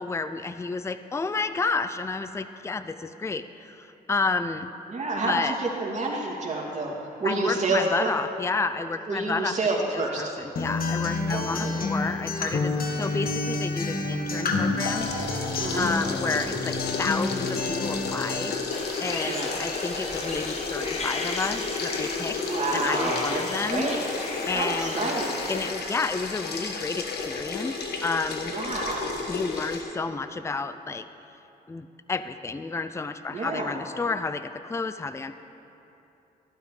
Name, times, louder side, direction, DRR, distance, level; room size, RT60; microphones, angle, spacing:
voice 1, 0.0-4.7 5.2-5.6 7.2-9.5 9.9-15.5 15.7-18.5 19.0-22.4 22.7-23.9 24.5-25.2 25.5-28.5 29.3-31.1 31.7-35.4, left 4 dB, 15° left, 11 dB, 0.4 m, -31 dB
voice 2, 4.9-8.1 9.1-10.3 11.3-11.8 15.6-15.9 19.2-19.5 22.4-24.0 24.5-25.4 28.5-29.1 33.3-33.8, right 2 dB, 45° right, -3 dB, 2.6 m, -29 dB
Acoustic guitar, 10.6-18.5, left 3 dB, 60° left, 1.2 m, -29 dB
sound 1, 14.8-29.8, left 4 dB, 80° left, 1.2 m, -32 dB
sound 2, 18.7-25.7, left 2 dB, 40° left, 1.5 m, -36 dB
14.5 x 12.5 x 3.3 m, 2.9 s
cardioid pair, 65°, 17 cm